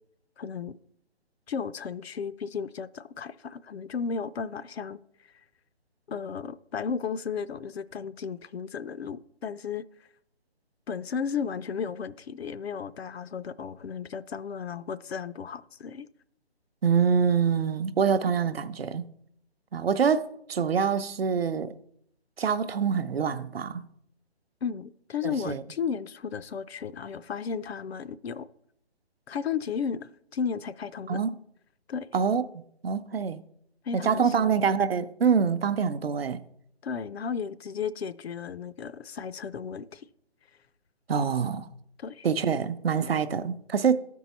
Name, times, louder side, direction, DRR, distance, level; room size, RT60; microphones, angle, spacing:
voice 1, 0.4-0.7 1.5-5.0 6.1-9.9 10.9-16.1 24.6-28.5 29.3-31.2 31.9-32.1 33.8-34.6 36.8-40.1 42.0-42.3, left 6 dB, 70° left, 0.5 m, -34 dB
voice 2, 16.8-19.1 19.7-21.7 22.4-23.8 25.2-25.6 31.1-31.3 32.1-32.4 32.8-33.4 33.9-36.4 41.1-41.7 42.2-44.0, right 6 dB, 65° right, 0.6 m, -25 dB
12.5 x 4.6 x 4.1 m
figure-of-eight pair, 160°, 32 cm